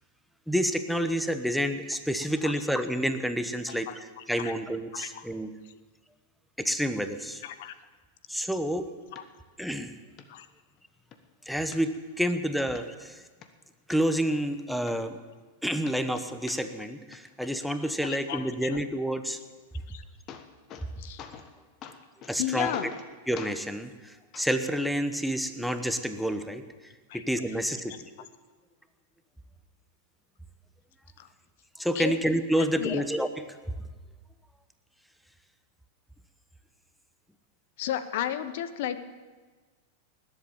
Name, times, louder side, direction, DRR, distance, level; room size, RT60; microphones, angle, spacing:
voice 1, 0.5-5.5 6.6-7.4 8.3-8.9 9.6-9.9 11.5-13.2 13.9-15.2 15.6-19.4 22.3-22.9 23.3-26.6 27.1-28.1 31.8-33.4, equal, ahead, 9 dB, 1.0 m, -29 dB
voice 2, 4.9-5.2 7.4-7.7 9.1-9.2 10.3-10.5 18.0-18.8 19.9-20.0 21.0-21.2 22.4-22.9 27.1-27.2 31.2-31.3 31.9-32.1 32.8-33.0 37.8-39.0, left 11 dB, 65° left, 13 dB, 1.0 m, -33 dB
sound 1, 9.2-9.3 9.7-9.8 10.2-10.3 10.7-11.2 11.7-12.3 12.8-12.9 13.2-14.0 14.5-14.6 14.9-15.6 15.8-16.9 17.1-17.7 19.7-19.8 20.1-20.9 21.2-21.5 21.8-22.4 22.7-23.1 23.4-23.6 24.3-24.5 25.4-25.5, left 8 dB, 40° left, 1.2 m, -45 dB
19.5 x 8.0 x 7.1 m, 1.4 s
hypercardioid pair, 105°, 0 cm